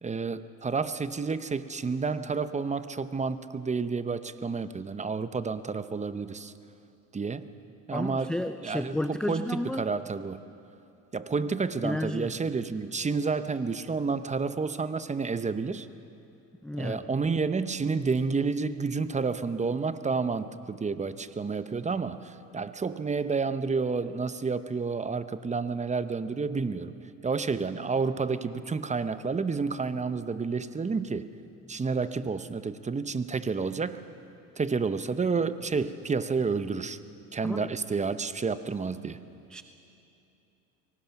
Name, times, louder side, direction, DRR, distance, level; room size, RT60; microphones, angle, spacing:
voice 1, 0.0-6.5 7.1-7.5 7.9-10.4 11.1-15.9 16.8-26.9 27.2-31.3 31.7-34.0 34.6-37.0 37.3-39.2, right 4 dB, 15° right, 12 dB, 0.8 m, -30 dB
voice 2, 7.9-9.9 11.8-12.3 16.6-17.1 37.4-37.7 39.5-39.6, left 1 dB, ahead, 10 dB, 0.4 m, -32 dB
24.0 x 19.0 x 5.9 m, 2.9 s
supercardioid pair, 90°, 40 cm